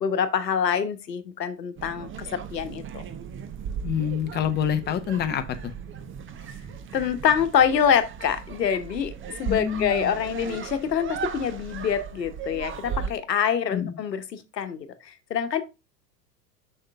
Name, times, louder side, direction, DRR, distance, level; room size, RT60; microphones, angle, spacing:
voice 1, 0.0-3.0 6.9-9.1 9.4-15.6, left 8 dB, 80° left, 1.0 m, -25 dB
sound 1, 1.8-13.1, right 7 dB, 25° right, 0.9 m, -37 dB
voice 2, 3.8-5.7 9.5-10.1 13.7-14.0, left 9 dB, 20° left, 0.8 m, -27 dB
6.5 x 5.8 x 3.5 m
figure-of-eight pair, 85°, 49 cm